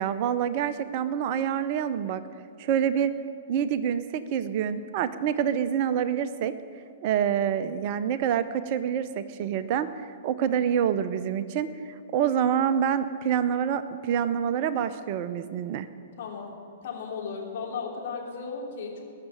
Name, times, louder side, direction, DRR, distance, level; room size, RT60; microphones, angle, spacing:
voice 1, 0.0-2.2 2.6-3.1 3.5-6.5 7.0-15.9, right 9 dB, 45° right, 13 dB, 0.6 m, -27 dB
voice 2, 16.1-16.5 16.8-19.0, left 5 dB, 50° left, -2 dB, 3.2 m, -35 dB
19.5 x 6.6 x 8.8 m, 2.4 s
figure-of-eight pair, 110°, 0 cm